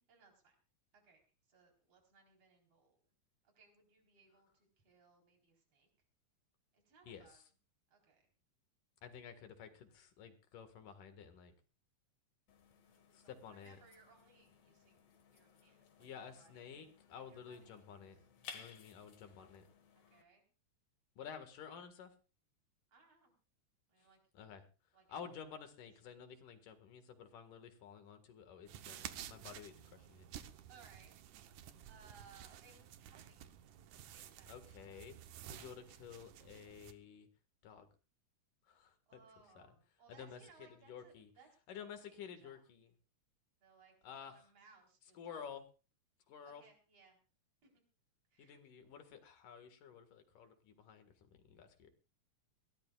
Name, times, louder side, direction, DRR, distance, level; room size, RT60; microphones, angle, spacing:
voice 1, 0.1-0.6 0.9-3.0 3.4-5.9 6.7-7.4 7.9-8.2 12.7-15.0 15.3-16.6 17.3-18.1 19.9-20.4 22.9-23.3 23.9-24.2 24.9-25.5 26.0-26.2 30.7-31.1 31.6-33.5 34.1-35.1 39.1-41.5 42.1-42.6 43.6-43.9 44.2-45.5 46.4-47.2 47.6-47.8 48.3-48.6, right 5 dB, 50° right, 1 dB, 5.2 m, -66 dB
voice 2, 7.1-7.4 9.0-11.5 13.1-13.8 16.0-18.2 18.5-19.6 21.2-22.1 24.0-24.1 24.3-24.6 25.1-30.3 34.5-35.1 35.5-37.3 37.6-37.9 38.7-39.2 39.6-39.7 40.1-40.4 40.9-41.3 41.7-42.9 44.0-44.4 45.1-45.6 46.3-46.6 48.4-51.9, left 7 dB, 85° left, 7 dB, 3.4 m, -52 dB
sound 1, 12.5-20.2, left 6 dB, 60° left, 2.8 m, -59 dB
sound 2, 28.7-36.9, right 10 dB, 80° right, 2.5 m, -53 dB
22.0 x 17.5 x 2.4 m, 0.34 s
omnidirectional pair, 3.6 m